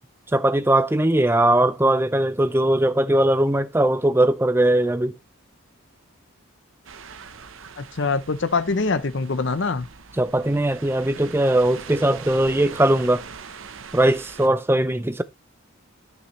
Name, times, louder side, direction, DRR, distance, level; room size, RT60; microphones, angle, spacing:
voice 1, 0.3-5.1 10.2-13.2 13.9-15.2, right 1 dB, 10° right, 0.5 m, -20 dB
sound 1, 6.8-14.5, right 5 dB, 70° right, 0.9 m, -41 dB
voice 2, 7.8-9.9, left 4 dB, 55° left, 0.6 m, -24 dB
10.0 x 8.2 x 3.1 m
head